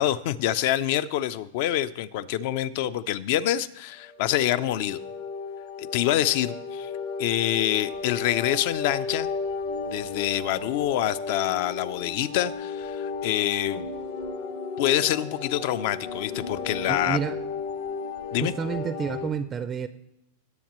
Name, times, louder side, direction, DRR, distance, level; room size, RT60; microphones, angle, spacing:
voice 1, 0.0-5.0 5.8-6.9 7.2-9.3 9.9-13.9 14.8-17.2 18.3-18.5, left 12 dB, 55° left, 16 dB, 0.4 m, -26 dB
sound 1, 4.0-19.3, left 4 dB, 75° left, 1.7 m, -34 dB
voice 2, 16.9-17.4 18.4-19.9, right 7 dB, 20° right, 11 dB, 0.4 m, -29 dB
17.5 x 7.3 x 3.0 m, 0.81 s
supercardioid pair, 150°, 0 cm